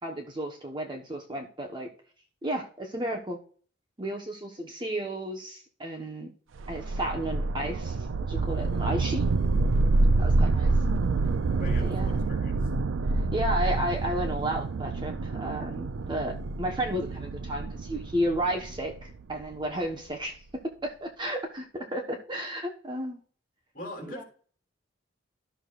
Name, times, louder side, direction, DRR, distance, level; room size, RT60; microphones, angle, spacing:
voice 1, 0.0-1.9 2.4-3.4 4.0-6.3 6.7-8.0 8.3-9.3 10.2-10.7 11.8-12.3 13.1-23.2 24.0-24.2, right 1 dB, 25° right, 2 dB, 1.1 m, -33 dB
sound 1, 6.6-19.7, right 3 dB, 75° right, 0.4 m, -27 dB
voice 2, 11.6-12.6 23.7-24.2, left 1 dB, 45° left, -1 dB, 3.3 m, -41 dB
12.5 x 6.5 x 2.5 m, 0.43 s
head